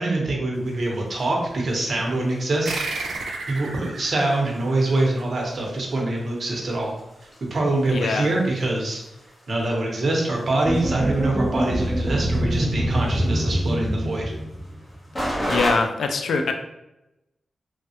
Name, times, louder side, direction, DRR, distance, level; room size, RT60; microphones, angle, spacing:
voice 1, 0.0-2.8 3.5-7.0 7.5-9.0 9.5-14.3, right 2 dB, 55° right, -1 dB, 0.8 m, -24 dB
sound 1, 0.5-15.7, equal, 20° left, 0.9 m, -37 dB
sound 2, 2.7-5.6, right 3 dB, 90° right, 0.4 m, -33 dB
voice 2, 7.9-8.3 15.5-16.5, left 4 dB, 90° left, 5 dB, 0.3 m, -23 dB
sound 3, 10.7-14.9, equal, 10° right, 0.3 m, -24 dB
3.1 x 2.3 x 2.8 m, 0.89 s
wide cardioid pair, 100°, 0 cm